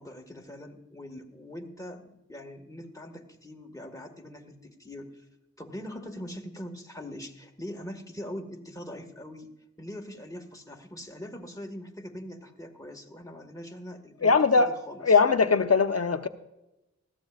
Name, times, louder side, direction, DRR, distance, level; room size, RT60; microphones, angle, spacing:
voice 1, 0.0-5.3 5.6-9.5 9.8-15.2, left 1 dB, 10° left, 2 dB, 1.7 m, -42 dB
voice 2, 14.2-14.7 15.0-16.3, left 4 dB, 55° left, 9 dB, 0.8 m, -21 dB
20.0 x 14.5 x 2.5 m, 0.94 s
wide cardioid pair, 45°, 29 cm